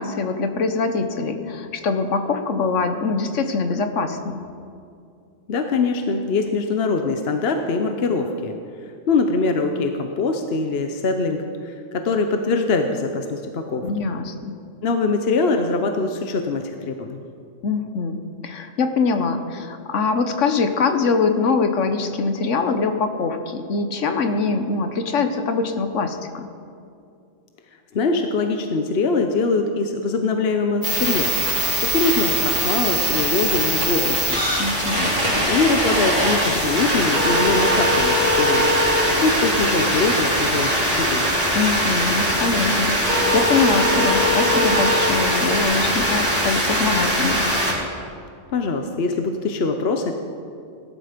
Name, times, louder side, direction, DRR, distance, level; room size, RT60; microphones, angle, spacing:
voice 1, 0.0-4.5 13.8-14.6 17.6-26.5 34.6-35.5 41.5-47.6, left 4 dB, 85° left, 8 dB, 1.3 m, -23 dB
voice 2, 5.5-8.6 9.1-13.9 14.8-17.2 27.9-31.3 31.8-34.4 35.4-38.6 39.2-41.2 48.5-50.1, left 3 dB, 60° left, 5 dB, 1.1 m, -23 dB
sound 1, 30.8-47.7, equal, 40° right, 4.0 m, -21 dB
18.5 x 12.0 x 5.1 m, 2.4 s
omnidirectional pair, 1.2 m